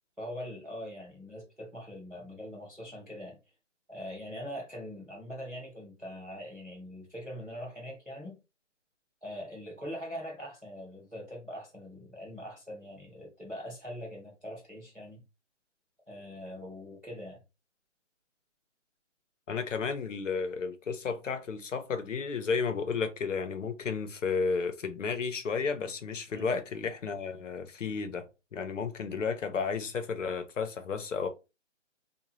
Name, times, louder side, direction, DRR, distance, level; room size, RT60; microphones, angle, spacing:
voice 1, 0.2-3.4 3.9-8.4 9.2-15.2 16.1-17.4 26.3-26.4, equal, ahead, 0.5 m, -42 dB
voice 2, 19.5-31.3, left 5 dB, 90° left, 0.8 m, -32 dB
2.7 x 2.3 x 3.1 m
hypercardioid pair, 155°, 37 cm